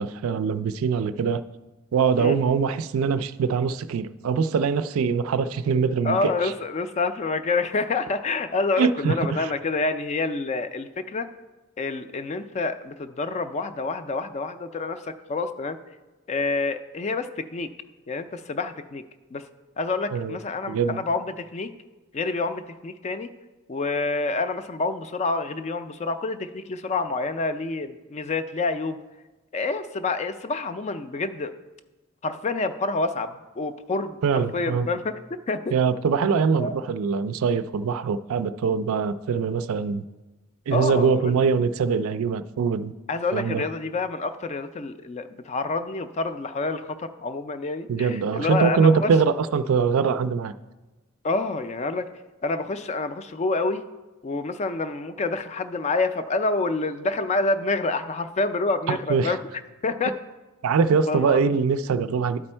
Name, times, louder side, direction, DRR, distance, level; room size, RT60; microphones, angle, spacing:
voice 1, 0.0-1.4 1.9-6.2 6.4-6.5 8.8-9.5 20.1-20.4 20.7-21.0 34.2-34.9 35.7-40.0 40.7-42.9 43.3-43.6 47.9-50.5 58.9-59.3 60.6-62.4, right 5 dB, 80° right, 13 dB, 0.4 m, -23 dB
voice 2, 6.0-11.3 11.8-15.8 16.3-17.7 18.1-19.0 19.3-19.4 19.8-21.7 22.1-23.3 23.7-29.0 29.5-31.5 32.2-35.1 35.5-35.7 36.6-36.8 40.7-41.3 43.1-49.1 51.2-52.1 52.4-53.8 54.2-59.4 59.8-60.2 61.1-61.4, left 3 dB, 30° left, 10 dB, 0.3 m, -27 dB
11.0 x 4.4 x 4.3 m, 1.2 s
head